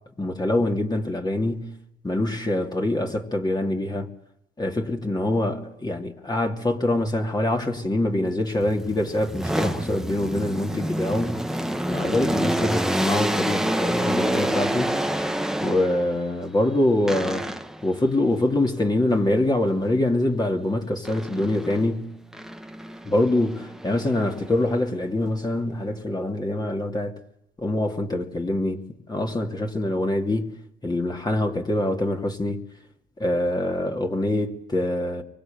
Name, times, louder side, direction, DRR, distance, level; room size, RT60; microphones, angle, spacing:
voice 1, 0.2-1.7 2.0-4.1 4.6-11.4 11.9-14.9 15.6-17.5 17.8-22.2 23.0-27.1 27.6-30.5 30.8-32.6 33.2-35.2, left 1 dB, 20° left, 2.7 m, -24 dB
sound 1, 8.5-16.2 17.1-17.9 21.0-21.9 22.3-24.7, right 1 dB, ahead, 1.3 m, -28 dB
25.0 x 24.0 x 9.2 m
cardioid pair, 90°, 20 cm